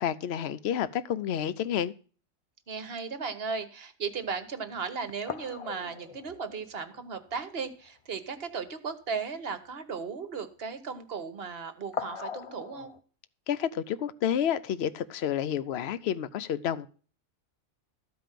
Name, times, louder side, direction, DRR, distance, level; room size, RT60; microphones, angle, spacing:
voice 1, 0.0-1.9 13.5-16.9, left 9 dB, 60° left, 0.8 m, -30 dB
voice 2, 2.7-12.9, right 5 dB, 50° right, 1.2 m, -36 dB
sound 1, 4.2-4.3 4.8-4.9 5.3-7.6 7.8-7.9 8.3-8.5 11.9-13.0, left 6 dB, 40° left, 0.5 m, -40 dB
14.0 x 5.2 x 7.5 m
omnidirectional pair, 1.4 m